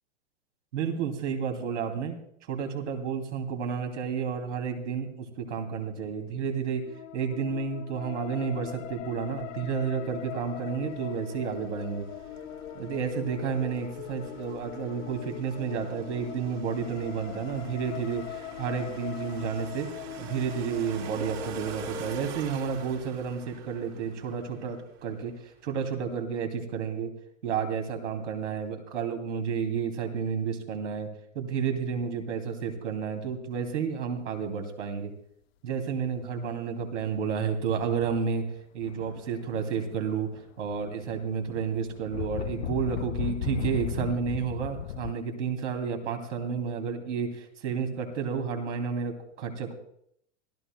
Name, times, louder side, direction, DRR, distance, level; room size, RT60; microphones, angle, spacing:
voice 1, 0.7-2.2 2.5-6.8 7.1-12.1 12.7-19.9 20.2-25.3 25.6-27.1 27.4-31.1 31.3-35.1 35.6-38.4 38.7-40.3 40.6-49.7, right 6 dB, 75° right, 5 dB, 2.9 m, -31 dB
sound 1, 6.8-22.4, left 12 dB, 80° left, 1.7 m, -41 dB
sound 2, 9.5-25.7, right 6 dB, 60° right, 2.2 m, -46 dB
sound 3, 36.9-37.2 37.8-38.3 38.8-40.0 40.3-45.1, left 11 dB, 55° left, 0.6 m, -36 dB
26.0 x 12.5 x 2.3 m, 0.68 s
supercardioid pair, 150°, 36 cm